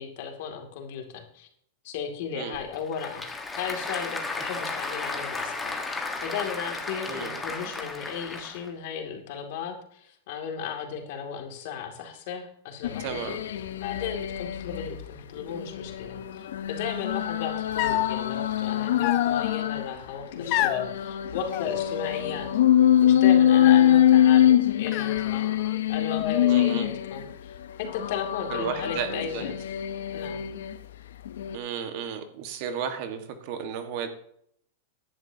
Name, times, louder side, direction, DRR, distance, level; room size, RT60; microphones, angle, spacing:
voice 1, 0.0-1.5 1.8-22.5 23.0-25.5 25.9-29.5 30.1-30.4, left 7 dB, 60° left, 3 dB, 2.5 m, -35 dB
Applause / Crowd, 2.5-8.7, left 3 dB, 10° left, 1.5 m, -34 dB
sound 1, 12.8-14.9 15.4-19.9 20.3-27.3 27.8-30.8 31.3-31.6, left 11 dB, 90° left, 0.8 m, -24 dB
voice 2, 13.0-13.4 26.5-26.9 28.5-29.4 31.5-34.1, right 7 dB, 50° right, 7 dB, 1.6 m, -33 dB
sound 2, 17.8-18.2 19.0-19.7 20.5-20.9 21.5-22.3 22.6-23.2 23.6-24.2 24.9-25.8 26.1-26.8, left 13 dB, 40° left, 0.8 m, -30 dB
15.5 x 11.0 x 2.9 m, 0.69 s
supercardioid pair, 150°, 0 cm